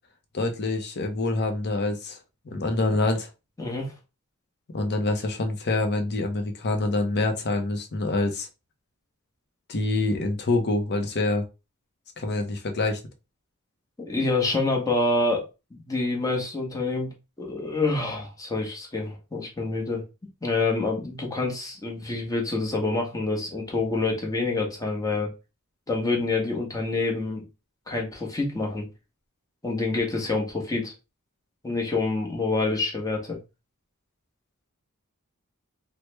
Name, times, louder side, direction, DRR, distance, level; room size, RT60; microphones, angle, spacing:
voice 1, 0.3-2.2 2.5-3.3 4.7-8.5 9.7-11.4 12.2-13.0, left 2 dB, 50° left, 0.6 m, -26 dB
voice 2, 3.6-3.9 14.0-15.4 15.9-17.1 17.4-20.0 20.4-25.3 25.9-27.4 27.9-28.9 29.6-30.9 31.6-33.4, left 3 dB, 15° left, 0.9 m, -27 dB
3.2 x 2.1 x 3.1 m
head